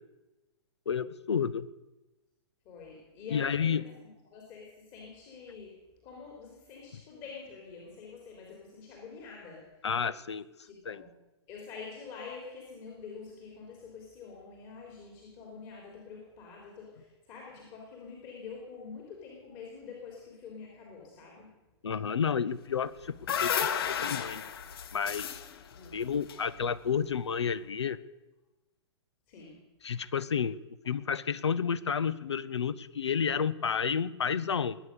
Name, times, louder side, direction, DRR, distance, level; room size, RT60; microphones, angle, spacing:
voice 1, 0.9-1.7 3.3-3.8 9.8-10.4 10.9-11.0 21.8-24.4 24.9-25.4 25.9-28.0 29.8-30.6 30.9-34.8, left 7 dB, 70° left, 19 dB, 0.8 m, -31 dB
voice 2, 2.7-3.9 4.2-5.8 6.0-9.9 10.6-11.1 11.5-21.6 25.7-26.0 29.3-29.6, left 5 dB, 35° left, 0 dB, 3.7 m, -46 dB
sound 1, 22.8-27.1, left 8 dB, 55° left, 1.2 m, -34 dB
21.5 x 9.2 x 6.7 m, 1.0 s
figure-of-eight pair, 110°, 15 cm